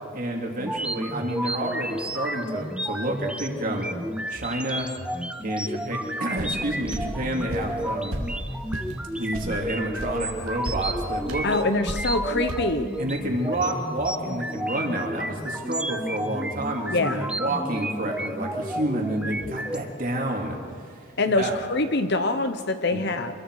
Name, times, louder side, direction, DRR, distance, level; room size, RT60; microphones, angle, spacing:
voice 1, 0.1-3.9 4.3-4.9 5.4-8.2 9.1-11.5 13.0-21.0 21.4-21.6 22.9-23.0, right 1 dB, 40° right, 0 dB, 2.9 m, -29 dB
sound 1, 0.6-19.8, right 1 dB, 5° right, 0.6 m, -32 dB
sound 2, 6.4-6.6 6.9-7.1 7.5-7.7 8.1-8.3 8.7-8.9 9.3-9.5 10.0-10.1 10.5-10.8 11.3-11.4 11.9-12.1 12.5-12.6, equal, 80° right, 2.6 m, -32 dB
voice 2, 11.4-12.9 16.9-17.3 21.2-23.4, left 2 dB, 50° left, 9 dB, 1.1 m, -24 dB
26.0 x 21.5 x 4.9 m, 2.1 s
head